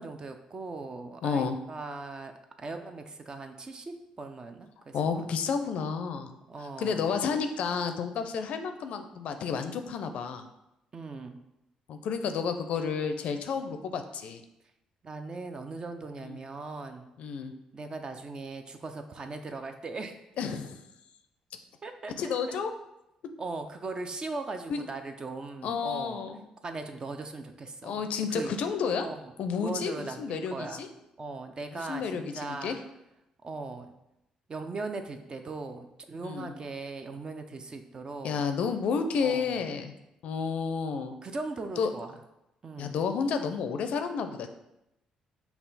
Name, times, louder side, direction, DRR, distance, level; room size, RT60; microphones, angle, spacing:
voice 1, 0.0-2.3 2.6-5.2 6.5-7.0 10.9-11.4 15.0-17.1 17.7-20.2 21.8-22.1 22.5-22.6 23.4-26.2 26.6-28.5 29.0-29.2 29.6-30.8 31.2-32.8 33.4-33.9 34.5-38.4 39.2-39.6 41.2-42.1 42.6-43.0, right 3 dB, 40° right, 6 dB, 0.5 m, -39 dB
voice 2, 1.2-1.6 4.9-6.3 6.8-10.4 11.9-14.4 16.2-16.4 17.2-17.5 20.4-20.8 22.2-22.7 24.7-24.9 25.6-26.4 27.8-29.1 29.4-30.9 31.7-32.8 36.2-36.5 38.2-39.9 40.2-41.1 41.8-41.9 42.8-44.5, left 6 dB, 70° left, 8 dB, 0.4 m, -31 dB
5.5 x 2.3 x 4.0 m, 0.88 s
supercardioid pair, 75°, 2 cm